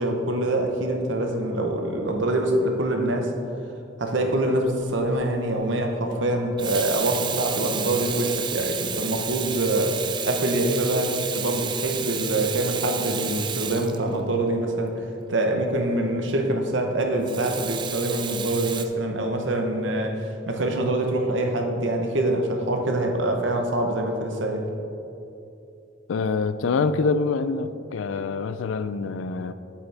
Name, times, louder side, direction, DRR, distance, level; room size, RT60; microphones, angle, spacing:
voice 1, 0.0-3.3 4.0-14.9 15.3-24.7, right 1 dB, 70° right, 3 dB, 0.9 m, -25 dB
Water tap faucet / Sink (filling or washing), 4.8-5.1 6.4-14.6 17.3-18.8, right 8 dB, 25° right, 0.3 m, -31 dB
voice 2, 26.1-29.5, left 4 dB, 90° left, 13 dB, 0.4 m, -25 dB
8.2 x 8.1 x 3.4 m, 2.8 s
head